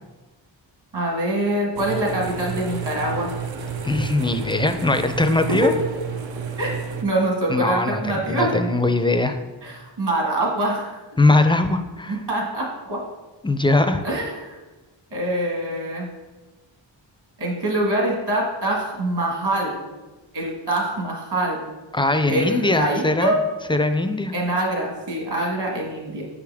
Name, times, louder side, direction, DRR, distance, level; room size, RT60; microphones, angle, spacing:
voice 1, 0.9-3.3 5.6-5.7 6.6-6.7 7.0-8.5 9.6-10.9 12.1-13.0 14.0-14.6 15.1-16.1 17.4-19.8 20.3-21.6 22.3-23.4 24.3-26.2, right 1 dB, 60° right, -1 dB, 1.7 m, -24 dB
sound 1, 1.7-7.0, right 6 dB, 85° right, 0.7 m, -31 dB
voice 2, 3.8-5.7 7.5-9.4 11.2-12.2 13.4-14.0 21.9-23.4 23.7-24.3, left 2 dB, 10° left, 8 dB, 0.3 m, -20 dB
6.6 x 5.0 x 3.5 m, 1.2 s
wide cardioid pair, 85°, 45 cm